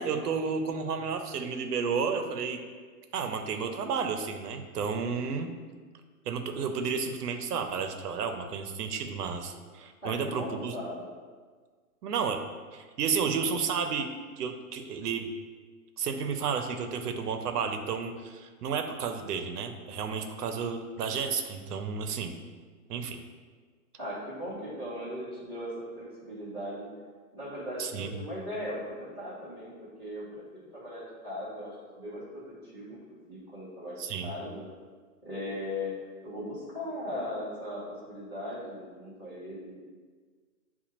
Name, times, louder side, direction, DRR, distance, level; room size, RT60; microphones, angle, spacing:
voice 1, 0.0-2.6 3.1-5.5 6.3-10.7 12.0-12.4 12.7-15.3 16.0-22.3 22.9-23.2 27.8-28.1 34.0-34.3, right 6 dB, 85° right, 6 dB, 0.7 m, -32 dB
voice 2, 10.0-11.0 24.0-26.9 27.3-29.7 30.0-34.6 35.2-35.9 36.2-39.8, left 1 dB, 5° left, -16 dB, 0.9 m, -38 dB
7.1 x 2.4 x 2.9 m, 1.5 s
hypercardioid pair, 175°, 46 cm